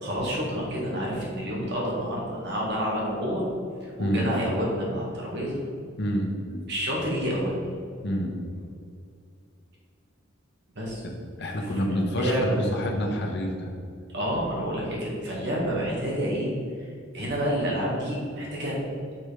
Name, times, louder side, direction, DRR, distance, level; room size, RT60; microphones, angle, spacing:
voice 1, 0.0-3.4 3.8-5.6 6.7-7.6 10.7-11.0 11.9-12.6 14.1-16.5 16.8-18.8, equal, 55° right, -4 dB, 1.7 m, -29 dB
voice 2, 6.0-6.7 8.0-8.4 11.4-13.7, equal, 55° left, 1 dB, 1.1 m, -28 dB
6.0 x 4.9 x 5.0 m, 2.3 s
head